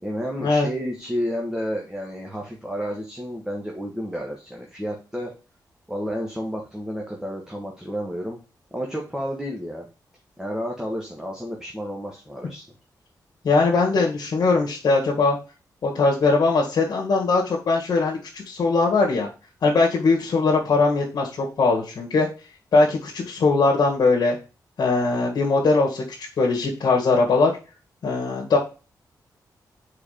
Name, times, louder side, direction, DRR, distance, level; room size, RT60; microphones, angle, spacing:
voice 1, 0.0-5.3 5.9-8.4 8.7-9.9 10.4-12.6, equal, 10° right, -1 dB, 1.5 m, -31 dB
voice 2, 13.4-15.4 15.8-19.3 19.6-22.3 22.7-24.4 24.8-26.0 26.4-27.5 28.0-28.6, left 3 dB, 65° left, -2 dB, 1.8 m, -20 dB
4.9 x 4.8 x 5.0 m, 0.33 s
wide cardioid pair, 105°, 7 cm